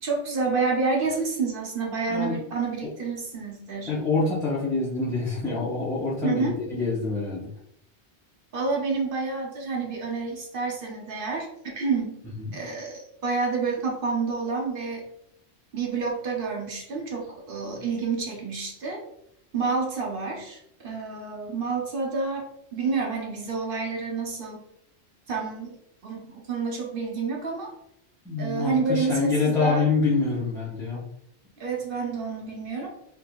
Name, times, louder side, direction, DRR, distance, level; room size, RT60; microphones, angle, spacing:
voice 1, 0.0-3.9 6.2-6.5 8.5-11.5 11.7-12.2 12.5-15.0 15.7-19.0 19.5-22.4 22.7-24.6 25.3-25.8 26.0-27.7 28.4-29.8 31.6-32.9, right 4 dB, 55° right, -1 dB, 0.9 m, -29 dB
voice 2, 3.9-7.5 12.4-12.5 28.2-31.0, left 3 dB, 5° left, -8 dB, 0.6 m, -26 dB
3.6 x 3.0 x 2.3 m, 0.76 s
omnidirectional pair, 1.2 m